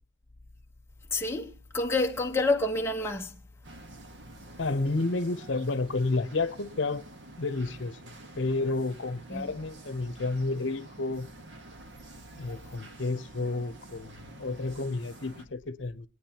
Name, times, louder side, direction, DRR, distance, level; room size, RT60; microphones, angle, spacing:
voice 1, 1.1-3.4 9.3-9.5, left 2 dB, 15° left, 1.0 m, -28 dB
sound 1, 3.6-15.4, right 2 dB, 70° right, 1.4 m, -49 dB
voice 2, 4.6-7.0 7.4-8.0 8.4-11.3 12.4-16.1, left 3 dB, 75° left, 0.8 m, -31 dB
24.5 x 9.8 x 2.9 m
head